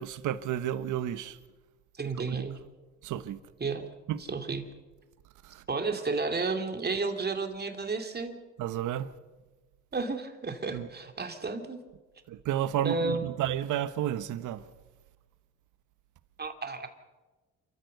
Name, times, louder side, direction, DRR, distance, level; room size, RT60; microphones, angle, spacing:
voice 1, 0.0-1.4 2.2-2.4 3.0-3.4 4.1-4.2 5.4-5.6 8.6-9.1 10.7-10.9 12.3-14.6, right 11 dB, 80° right, 1.2 m, -31 dB
voice 2, 2.0-2.6 3.6-3.8 4.3-4.6 5.7-8.4 9.9-11.8 12.8-13.3 16.4-16.9, right 3 dB, 35° right, 2.7 m, -32 dB
28.5 x 14.0 x 6.8 m
cardioid pair, 90°, 30 cm